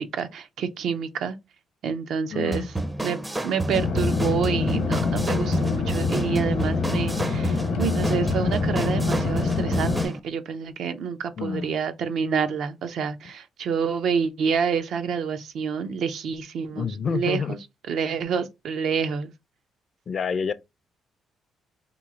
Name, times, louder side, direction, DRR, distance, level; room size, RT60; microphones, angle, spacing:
voice 1, 0.0-1.4 1.8-2.7 3.0-3.2 3.4-17.6 17.9-19.3, right 6 dB, 70° right, 0.5 m, -28 dB
voice 2, 2.3-2.7 11.4-11.8 16.7-17.5 20.1-20.5, left 6 dB, 45° left, 0.3 m, -28 dB
sound 1, 2.5-10.2, right 1 dB, 15° right, 0.4 m, -30 dB
sound 2, 3.7-10.1, left 4 dB, 75° left, 0.8 m, -25 dB
3.0 x 2.4 x 3.6 m
cardioid pair, 90°, 0 cm